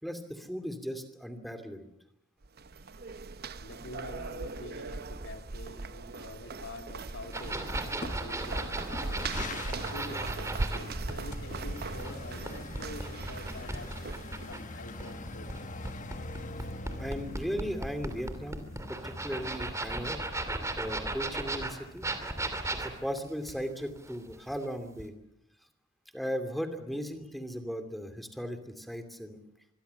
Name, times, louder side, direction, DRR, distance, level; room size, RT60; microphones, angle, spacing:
voice 1, 0.0-1.9 16.9-20.2 20.7-22.1 22.5-25.2 26.1-29.4, equal, ahead, 8 dB, 2.7 m, -37 dB
sound 1, 2.4-14.6, right 3 dB, 50° right, 0.8 m, -39 dB
voice 2, 3.6-7.6 8.2-14.0 14.5-15.7, left 1 dB, 65° left, 5 dB, 3.3 m, -46 dB
sound 2, 7.3-10.8 11.1-14.6 15.0-24.7 25.0-25.1, right 2 dB, 15° right, 2.8 m, -36 dB
sound 3, 7.7-23.5, left 2 dB, 40° left, 1.5 m, -44 dB
25.5 x 22.5 x 7.0 m, 0.80 s
head